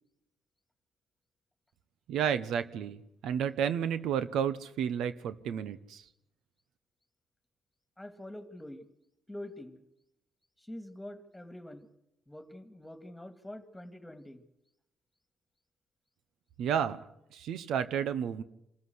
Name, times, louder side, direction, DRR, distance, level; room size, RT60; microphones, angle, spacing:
voice 1, 2.1-6.0 16.6-17.0 17.3-18.4, right 8 dB, 80° right, 13 dB, 1.0 m, -31 dB
voice 2, 8.0-8.8 9.3-9.8 10.6-11.9 12.3-14.4, left 1 dB, 5° left, 9 dB, 2.3 m, -45 dB
26.5 x 14.0 x 8.0 m, 0.82 s
cardioid pair, 90°, 0 cm